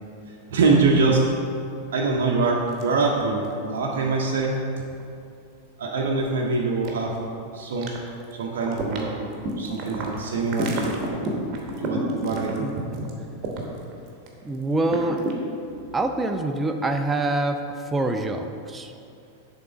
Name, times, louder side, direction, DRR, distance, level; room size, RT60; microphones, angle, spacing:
voice 1, 0.5-1.2 1.9-4.6 5.8-7.1 7.5-8.0 8.3-9.3 9.6-11.0 11.8-12.7, right 3 dB, 60° right, -2 dB, 0.6 m, -24 dB
sound 1, 2.7-3.5 3.8-3.9 4.4-5.0 5.6-5.7 6.0-6.2 6.8-7.4 7.8-8.3 8.6-14.3 14.5-15.3, right 2 dB, 35° right, 1.0 m, -30 dB
voice 2, 14.4-15.3 15.9-18.9, right 2 dB, 15° right, 5 dB, 0.3 m, -25 dB
6.8 x 3.7 x 5.1 m, 2.5 s
figure-of-eight pair, 90°, 0 cm